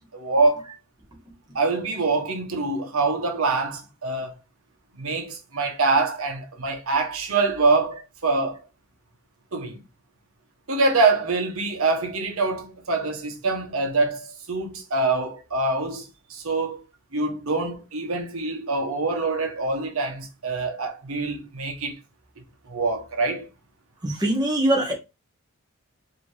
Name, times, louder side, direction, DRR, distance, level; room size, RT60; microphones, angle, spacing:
voice 1, 0.2-0.7 1.5-4.3 4.9-8.7 9.5-9.8 10.7-16.8 17.1-22.0 22.7-23.5, right 3 dB, 75° right, 1.2 m, -25 dB
voice 2, 24.0-24.9, right 1 dB, 20° right, 1.1 m, -22 dB
5.2 x 3.0 x 3.1 m
head